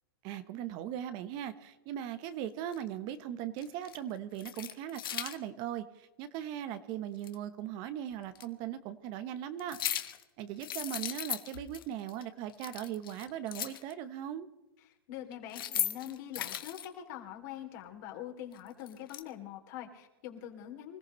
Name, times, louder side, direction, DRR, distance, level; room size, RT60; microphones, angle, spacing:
voice 1, 0.2-9.8 10.4-14.5, right 10 dB, 40° right, 11 dB, 1.0 m, -39 dB
sound 1, 2.7-2.8 3.6-4.0 4.3-5.4 7.2-7.3 8.4-8.5 9.6-10.2 10.6-11.8 12.1-12.2 12.5-13.9 15.3-16.9 18.5-19.2, left 11 dB, 70° left, 1.3 m, -37 dB
voice 2, 15.1-21.0, left 11 dB, 50° left, 2 dB, 2.9 m, -44 dB
25.5 x 14.5 x 3.2 m, 1.0 s
hypercardioid pair, 135°, 12 cm